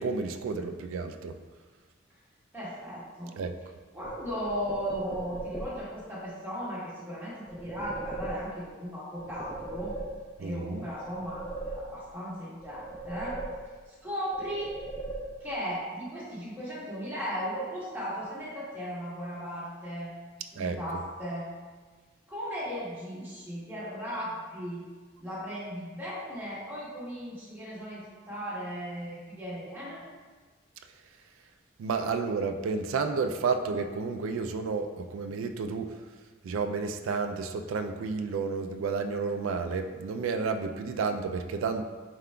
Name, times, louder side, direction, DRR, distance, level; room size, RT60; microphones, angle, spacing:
voice 1, 0.0-1.3 3.4-3.5 10.4-10.9 20.6-20.8 31.8-35.9 36.4-41.8, right 4 dB, 90° right, 7 dB, 0.3 m, -31 dB
voice 2, 2.5-3.4 3.9-9.9 10.4-13.4 13.9-14.8 15.4-20.1 20.5-21.5 22.3-24.8 25.2-30.0, equal, 10° right, -9 dB, 1.1 m, -36 dB
sound 1, 4.0-6.0 7.5-8.8 9.2-10.6 10.9-12.3 12.6-14.0 14.3-15.7, right 2 dB, 15° left, 0.6 m, -39 dB
4.5 x 3.7 x 2.2 m, 1.4 s
head